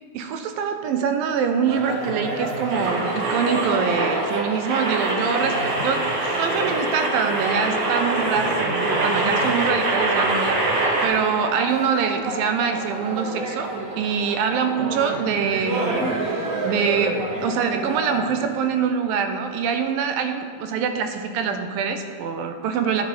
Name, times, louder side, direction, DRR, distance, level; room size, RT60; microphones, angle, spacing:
voice 1, 0.1-6.0 6.3-23.1, right 6 dB, 85° right, 7 dB, 2.4 m, -24 dB
sound 1, 1.7-18.6, right 2 dB, 70° right, 1.0 m, -30 dB
sound 2, 2.7-11.1, right 2 dB, 55° right, 1.6 m, -24 dB
10.5 x 9.5 x 4.2 m, 2.1 s
omnidirectional pair, 4.1 m